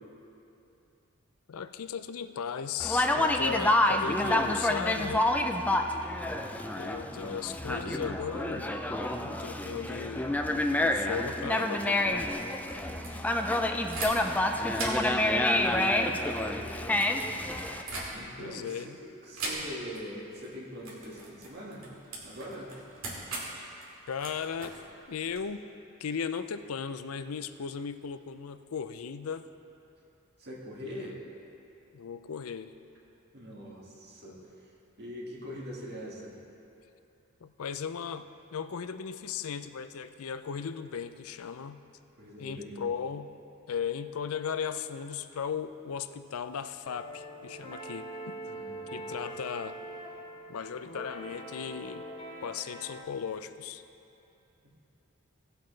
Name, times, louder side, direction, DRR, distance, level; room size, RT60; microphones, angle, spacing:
voice 1, 1.5-5.3 6.7-8.8 9.2-10.3 10.8-12.4 18.4-19.0 24.1-24.7 25.1-25.6 26.0-29.5 30.8-31.1 31.9-32.7 37.4-41.8 42.4-43.3 43.7-48.4 48.9-49.8 50.5-52.0 52.4-53.8, left 7 dB, 85° left, 11 dB, 0.5 m, -37 dB
Conversation, 2.8-17.8, left 1 dB, 5° left, 0.4 m, -28 dB
voice 2, 6.3-6.7 13.1-16.1 18.1-21.9 22.2-22.8 30.4-31.2 33.3-36.4 42.2-42.9 48.4-49.3, equal, 50° right, -3 dB, 2.0 m, -44 dB
sound 1, 12.1-14.4 14.7-18.5 19.3-20.0 20.3-20.5 20.8-25.4, right 2 dB, 70° right, 2.4 m, -41 dB
sound 2, 46.8-53.0, right 1 dB, 25° left, 1.1 m, -43 dB
18.5 x 7.8 x 3.3 m, 2.7 s
head